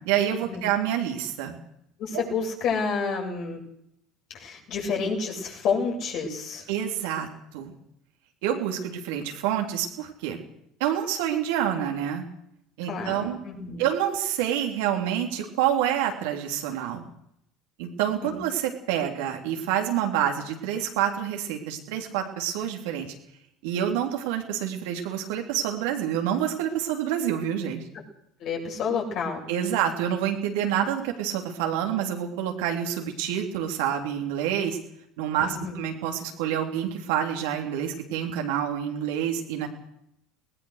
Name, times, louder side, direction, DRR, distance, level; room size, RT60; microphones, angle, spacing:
voice 1, 0.0-1.6 6.7-7.7 8.4-10.4 10.8-12.3 12.8-13.4 13.8-17.0 17.8-23.1 23.6-27.8 29.5-34.8 35.2-39.7, right 10 dB, 70° right, 3 dB, 3.3 m, -27 dB
voice 2, 2.0-3.6 4.3-6.7 12.9-13.9 18.2-18.4 28.4-29.4 35.4-35.8, left 5 dB, 55° left, 0 dB, 7.9 m, -29 dB
21.0 x 19.5 x 6.7 m, 0.75 s
hypercardioid pair, 65°, 0 cm